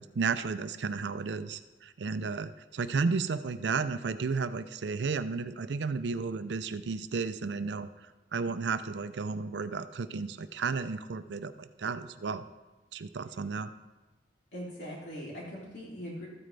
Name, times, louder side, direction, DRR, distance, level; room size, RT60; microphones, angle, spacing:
voice 1, 0.0-12.4 12.9-13.7, right 4 dB, 70° right, 12 dB, 0.5 m, -33 dB
voice 2, 14.5-16.3, equal, 70° left, -5 dB, 3.3 m, -41 dB
13.5 x 9.0 x 3.3 m, 1.2 s
head